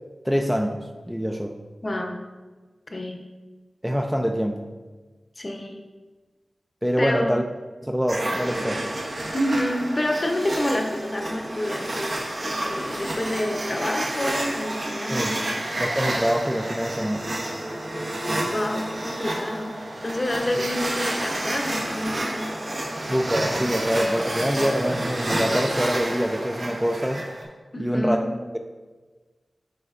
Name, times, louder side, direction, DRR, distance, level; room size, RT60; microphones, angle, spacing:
voice 1, 0.2-0.8 1.1-1.6 3.8-4.7 6.8-7.4 7.8-8.8 15.1-15.4 15.8-17.3 23.1-27.3 27.8-28.3, equal, 5° right, 4 dB, 0.4 m, -25 dB
voice 2, 1.8-2.3 2.9-3.3 5.4-5.8 7.0-7.4 9.3-15.7 18.4-19.8 20.0-23.0 27.7-28.3, left 1 dB, 35° left, 4 dB, 0.7 m, -28 dB
sound 1, 8.1-27.4, right 1 dB, 55° right, 1.2 m, -29 dB
10.5 x 4.4 x 2.4 m, 1.3 s
wide cardioid pair, 95°, 0 cm